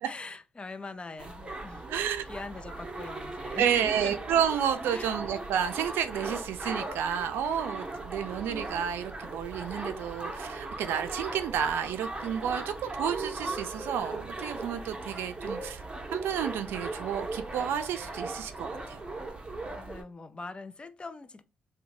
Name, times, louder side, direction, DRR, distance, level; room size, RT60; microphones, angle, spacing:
voice 1, 0.0-4.2 4.9-5.2 19.8-21.4, left 3 dB, 30° left, 0.4 m, -42 dB
sound 1, 1.2-20.0, right 2 dB, 25° right, 0.7 m, -38 dB
voice 2, 1.9-2.2 3.6-15.8 16.1-19.0, right 8 dB, 80° right, 0.3 m, -31 dB
2.7 x 2.1 x 3.0 m
supercardioid pair, 65°, 4 cm